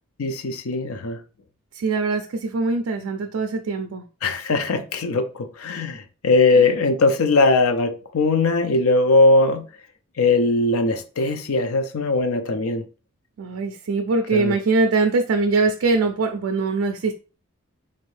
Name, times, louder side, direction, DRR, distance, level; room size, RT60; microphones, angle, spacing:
voice 1, 0.2-1.2 4.2-9.7 10.2-12.8 14.3-14.5, left 3 dB, 70° left, 0.5 m, -20 dB
voice 2, 1.7-4.0 6.5-6.6 13.4-17.1, right 3 dB, 70° right, 0.4 m, -22 dB
3.8 x 2.6 x 3.2 m
head